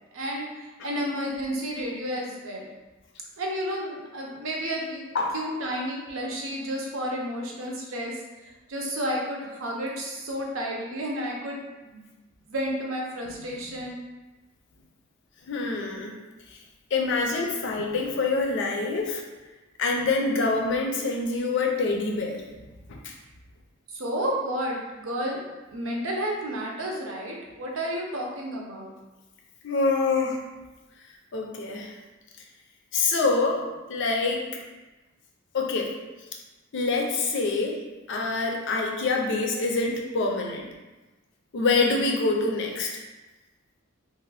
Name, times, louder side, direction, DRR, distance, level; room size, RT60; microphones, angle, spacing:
voice 1, 0.0-2.7 3.4-5.0 5.3-12.1 12.5-14.0 17.8-17.9 23.9-25.4 25.7-28.9, equal, 70° right, -1 dB, 0.6 m, -31 dB
voice 2, 15.5-16.2 16.9-19.2 19.8-22.4 22.9-23.1 29.6-30.4 31.3-31.9 32.9-34.5 35.5-35.9 36.7-37.8 38.1-40.7 41.5-43.0, left 3 dB, 60° left, 1 dB, 0.5 m, -26 dB
2.6 x 2.5 x 3.3 m, 1.1 s
head